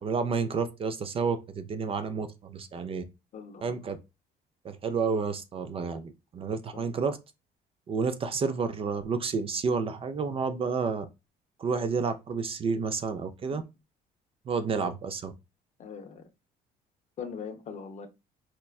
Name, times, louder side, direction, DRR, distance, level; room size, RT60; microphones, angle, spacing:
voice 1, 0.0-3.0 3.6-4.0 4.6-7.2 7.9-11.1 11.6-13.6 14.5-15.3, right 5 dB, 35° right, 0.4 m, -30 dB
voice 2, 3.3-3.9 6.7-6.9 13.5-13.6 15.8-16.3 17.2-18.1, left 6 dB, 45° left, 0.6 m, -41 dB
4.2 x 2.2 x 2.3 m
cardioid pair, 110°, 17 cm